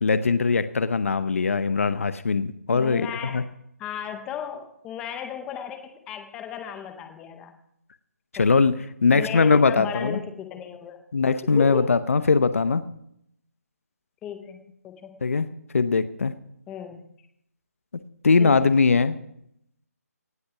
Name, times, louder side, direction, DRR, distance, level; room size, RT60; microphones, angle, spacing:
voice 1, 0.0-3.4 8.3-10.2 11.1-12.8 15.2-15.5 15.7-16.3 18.2-19.2, left 4 dB, 55° left, 13 dB, 0.8 m, -21 dB
voice 2, 2.7-3.4 3.8-7.6 8.4-8.5 9.1-11.0 11.5-11.9 14.2-15.2 16.7-17.0 18.4-18.7, left 9 dB, 5° left, 7 dB, 0.6 m, -35 dB
17.5 x 8.5 x 6.0 m, 0.75 s
hypercardioid pair, 175°, 9 cm